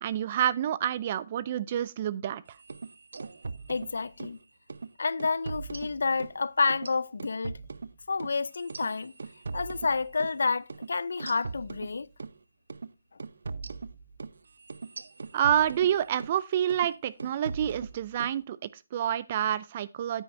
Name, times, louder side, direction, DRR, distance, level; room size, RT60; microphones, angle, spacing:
voice 1, 0.0-2.4 15.3-20.2, right 10 dB, 30° right, 0.4 m, -28 dB
sound 1, 2.6-4.4 4.7-4.9 5.2-6.4 6.7-10.4 10.7-10.9 11.2-12.4 12.7-12.9 13.2-16.4 16.7-16.9 17.2-18.4, right 4 dB, 90° right, 0.6 m, -40 dB
voice 2, 3.7-4.4 5.0-7.6 8.1-9.1 9.5-12.1, left 4 dB, 85° left, 0.5 m, -29 dB
9.4 x 9.1 x 2.6 m
hypercardioid pair, 170°, 0 cm